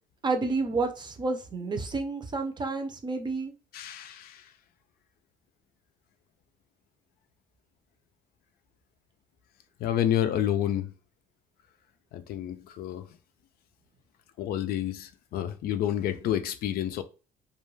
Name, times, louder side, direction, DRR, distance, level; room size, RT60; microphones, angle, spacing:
voice 1, 0.2-3.5, right 3 dB, 25° right, 0.5 m, -30 dB
voice 2, 3.7-4.4 9.8-10.9 12.1-13.1 14.4-17.0, left 11 dB, 65° left, 0.4 m, -29 dB
2.3 x 2.2 x 3.1 m
cardioid pair, 110°, 17 cm